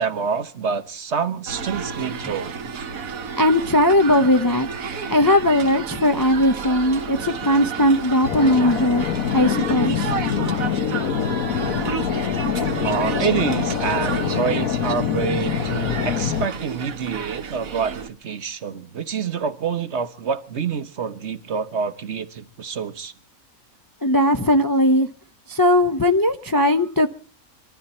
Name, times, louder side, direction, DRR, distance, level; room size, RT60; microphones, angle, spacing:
voice 1, 0.0-2.5 12.8-23.1, right 6 dB, 55° right, 1.2 m, -27 dB
sound 1, 1.5-18.1, right 6 dB, 75° right, 1.7 m, -31 dB
voice 2, 3.4-4.7 5.1-9.1 9.3-10.1 24.0-25.1 25.5-27.1, left 1 dB, 25° left, 0.5 m, -18 dB
sound 2, 8.2-16.5, left 8 dB, 80° left, 1.4 m, -24 dB
25.0 x 12.5 x 4.3 m
omnidirectional pair, 1.5 m